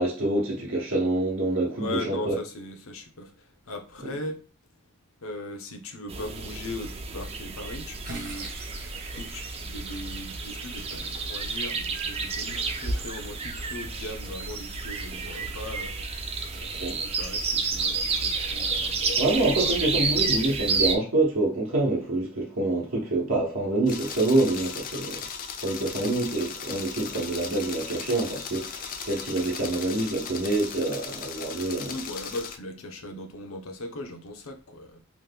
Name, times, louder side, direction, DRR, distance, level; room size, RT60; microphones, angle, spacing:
voice 1, 0.0-2.3 16.7-17.0 18.4-18.6 19.2-25.3 25.6-31.9, right 2 dB, 70° right, 0.8 m, -26 dB
voice 2, 1.8-4.5 5.2-8.8 9.1-16.0 17.0-19.8 24.6-24.7 31.9-35.0, left 1 dB, 85° left, 0.6 m, -39 dB
sound 1, 6.1-21.0, right 4 dB, 30° right, 0.4 m, -30 dB
sound 2, 7.6-19.9, equal, 45° right, 1.0 m, -46 dB
sound 3, 23.9-32.6, left 6 dB, 40° left, 0.4 m, -37 dB
3.0 x 2.2 x 3.4 m
head